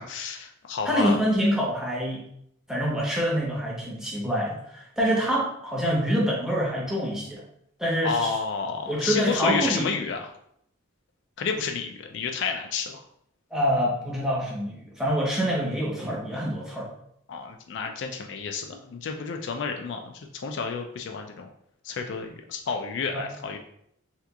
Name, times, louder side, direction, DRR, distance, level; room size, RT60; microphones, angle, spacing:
voice 1, 0.0-1.2 8.0-10.3 11.4-13.0 17.3-21.5 21.8-23.6, left 5 dB, 60° left, 4 dB, 0.3 m, -30 dB
voice 2, 0.8-2.2 2.7-7.4 7.8-8.3 8.9-10.1 13.5-16.9 23.1-23.3, equal, 5° right, -4 dB, 0.7 m, -26 dB
2.9 x 2.4 x 3.4 m, 0.71 s
head